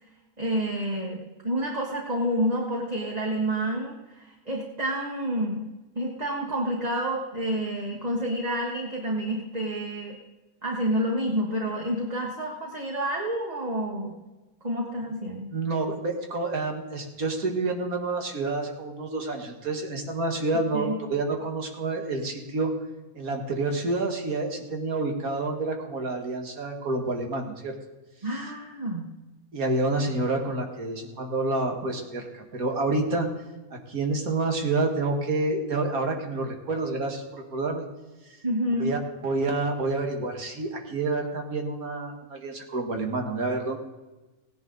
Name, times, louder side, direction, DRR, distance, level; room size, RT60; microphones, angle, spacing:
voice 1, 0.4-5.7 5.9-10.2 10.6-14.1 14.6-15.5 20.7-21.0 28.2-29.0 38.4-38.9, right 1 dB, 30° right, -2 dB, 1.5 m, -29 dB
voice 2, 15.5-22.7 23.1-27.8 29.5-33.3 33.7-37.9 38.8-39.0 39.2-43.8, right 2 dB, 70° right, 3 dB, 2.2 m, -28 dB
16.5 x 10.5 x 4.0 m, 1.1 s
omnidirectional pair, 1.6 m